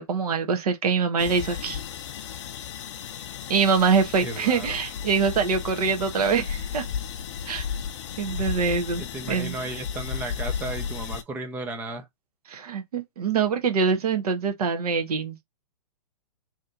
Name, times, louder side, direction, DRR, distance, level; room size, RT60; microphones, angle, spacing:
voice 1, 0.0-1.8 3.5-6.8 7.5-7.6 8.2-9.6 12.5-15.4, right 5 dB, 65° right, 1.2 m, -24 dB
sound 1, 1.2-11.2, left 7 dB, 45° left, 0.5 m, -34 dB
voice 2, 4.2-4.8 9.0-12.0, right 2 dB, 10° right, 0.4 m, -34 dB
3.2 x 2.9 x 3.8 m
hypercardioid pair, 155°, 21 cm